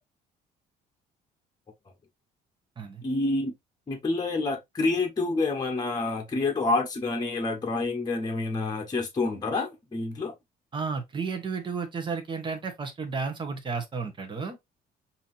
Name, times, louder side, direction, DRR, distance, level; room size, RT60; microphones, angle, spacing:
voice 1, 3.0-3.5 3.9-10.3, left 3 dB, 25° left, 1.0 m, -28 dB
voice 2, 10.7-14.6, right 5 dB, 30° right, 1.2 m, -32 dB
5.6 x 2.8 x 2.6 m
cardioid pair, 110°, 17 cm